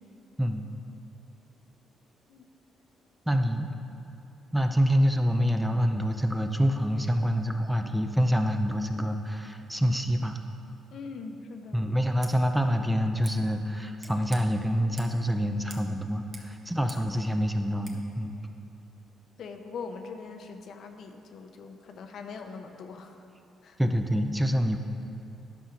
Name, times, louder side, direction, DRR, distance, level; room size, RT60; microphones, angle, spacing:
voice 1, 3.3-3.7 4.5-10.4 11.7-18.3 23.8-24.8, equal, 5° right, 5 dB, 0.6 m, -26 dB
voice 2, 10.9-11.8 17.0-17.1 19.4-23.2 23.6-23.8, left 4 dB, 65° left, 5 dB, 0.8 m, -42 dB
Scissors, 12.1-12.3 13.2-13.4 14.0-14.4 15.0-15.2 15.7-15.9 16.2-17.1 17.8-18.0, right 3 dB, 40° right, 1.4 m, -47 dB
10.5 x 5.6 x 5.8 m, 2.8 s
cardioid pair, 90°, 0 cm